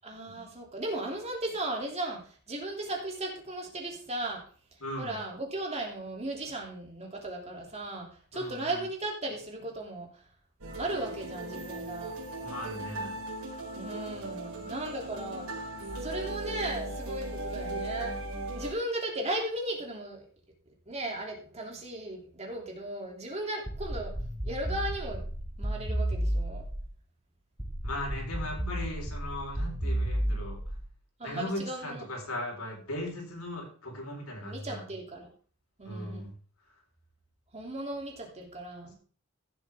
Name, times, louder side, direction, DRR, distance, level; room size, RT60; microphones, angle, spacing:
voice 1, 0.0-2.2 2.5-4.4 5.0-10.1 10.8-12.1 13.7-15.6 16.0-18.1 18.5-20.3 20.9-24.1 24.4-25.2 25.6-26.6 31.2-32.0 34.4-35.3 35.8-36.3 37.5-38.9, right 1 dB, 30° right, 1 dB, 2.9 m, -36 dB
voice 2, 4.8-5.2 8.3-8.8 12.4-13.1 27.8-30.6 31.2-34.9 35.8-36.3, left 1 dB, 80° left, 1 dB, 4.4 m, -38 dB
sound 1, 10.6-18.7, right 2 dB, 80° right, 4.7 m, -38 dB
sound 2, 23.7-26.9 27.6-30.9, right 1 dB, 10° right, 3.2 m, -32 dB
15.5 x 7.9 x 3.6 m, 0.42 s
head